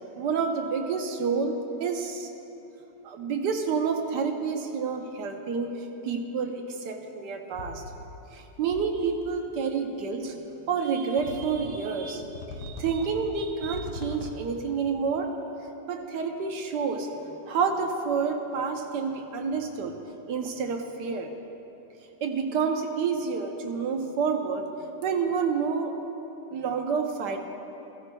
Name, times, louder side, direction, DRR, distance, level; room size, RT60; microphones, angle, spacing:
voice 1, 0.2-2.3 3.0-5.7 6.0-7.8 8.3-10.4 10.7-12.3 12.6-15.3 15.9-17.1 17.5-20.0 20.3-21.3 22.2-24.6 25.0-26.0 26.5-27.4, right 5 dB, 80° right, 4 dB, 1.4 m, -29 dB
sound 1, 7.5-8.3 8.6-9.3 10.2-10.3 11.2-11.9 12.2-14.6, left 3 dB, 90° left, 1.4 m, -41 dB
15.5 x 13.0 x 2.2 m, 3.0 s
omnidirectional pair, 1.8 m